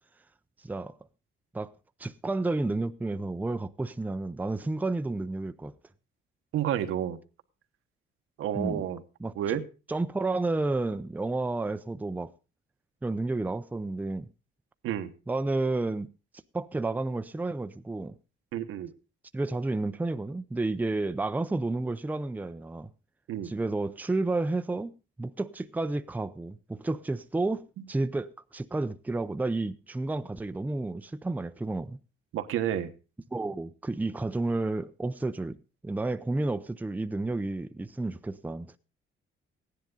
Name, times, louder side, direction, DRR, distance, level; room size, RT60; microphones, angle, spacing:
voice 1, 0.6-1.0 1.5-1.7 2.0-5.7 8.6-8.8 9.2-9.6 9.9-12.3 13.0-14.3 15.3-16.1 16.5-18.1 19.3-22.9 23.4-24.9 25.2-32.0 33.3-35.6 35.8-38.7, right 2 dB, 10° right, 0.5 m, -31 dB
voice 2, 6.5-7.2 8.4-9.0 9.3-9.7 14.8-15.1 18.5-18.9 23.3-23.5 32.3-32.9, right 10 dB, 80° right, 1.2 m, -30 dB
15.0 x 10.5 x 3.9 m
cardioid pair, 110°, 21 cm